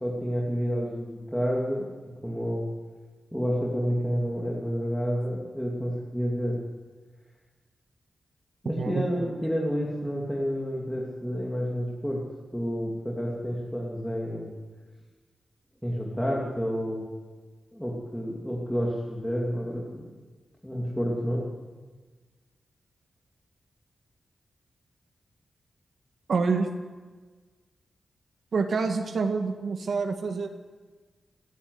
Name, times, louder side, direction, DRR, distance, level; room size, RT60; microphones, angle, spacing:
voice 1, 0.0-1.9 2.2-2.7 3.3-6.6 8.6-12.2 12.5-14.5 15.8-17.0 17.7-20.1 20.6-21.4, equal, ahead, -4 dB, 2.9 m, -29 dB
voice 2, 26.3-26.7 28.5-30.5, right 4 dB, 65° right, 5 dB, 1.8 m, -27 dB
30.0 x 11.0 x 8.0 m, 1.4 s
wide cardioid pair, 145°, 0 cm